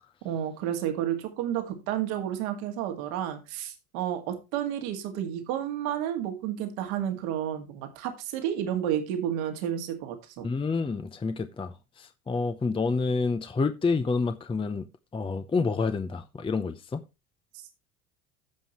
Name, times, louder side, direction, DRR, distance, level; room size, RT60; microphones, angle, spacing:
voice 1, 0.2-10.5, right 10 dB, 70° right, 2.2 m, -31 dB
voice 2, 10.4-14.9 15.1-17.0, left 4 dB, 10° left, 0.7 m, -28 dB
15.0 x 5.5 x 3.0 m
hypercardioid pair, 75°, 43 cm